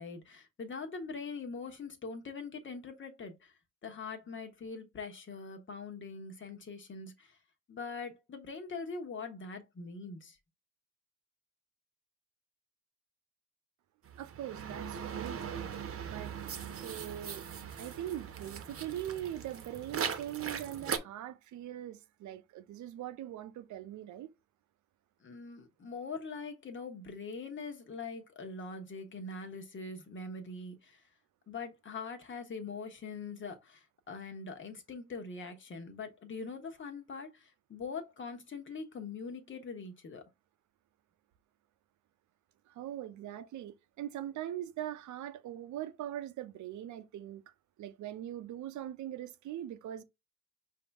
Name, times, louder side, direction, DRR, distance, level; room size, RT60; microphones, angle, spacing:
voice 1, 0.0-3.6 3.8-7.4 7.7-10.4 15.6-15.7 25.2-31.0 31.5-40.2, left 4 dB, 40° left, 1.3 m, -43 dB
sound 1, 14.1-21.0, right 7 dB, 45° right, 0.9 m, -40 dB
voice 2, 14.2-15.5 16.0-16.3 16.8-17.4 17.8-24.3 42.7-47.4 47.8-50.0, right 12 dB, 70° right, 0.6 m, -41 dB
5.2 x 2.8 x 3.4 m
cardioid pair, 90°, 30 cm